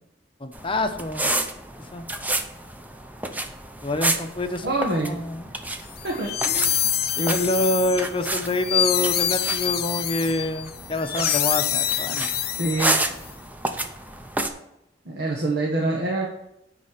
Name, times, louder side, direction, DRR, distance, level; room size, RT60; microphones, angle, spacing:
voice 1, 0.4-1.3 1.9-2.1 3.8-5.5 7.2-12.3, left 1 dB, 30° left, 7 dB, 0.8 m, -26 dB
sound 1, 0.5-14.5, right 1 dB, 10° right, 0.7 m, -31 dB
voice 2, 4.6-5.2 6.0-6.8 12.6-13.0 15.0-16.3, right 2 dB, 65° right, -1 dB, 1.3 m, -26 dB
sound 2, 6.0-13.2, left 11 dB, 60° left, 0.6 m, -26 dB
10.0 x 4.2 x 6.5 m, 0.82 s
head